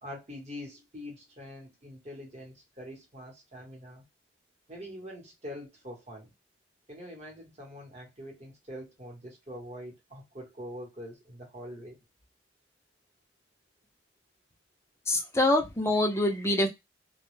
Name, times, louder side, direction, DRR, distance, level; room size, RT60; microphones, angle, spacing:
voice 1, 0.0-4.0 4.7-6.3 6.9-12.0, equal, 35° right, 0.9 m, -44 dB
voice 2, 15.1-16.7, left 1 dB, 15° left, 0.4 m, -25 dB
2.1 x 2.0 x 3.0 m
head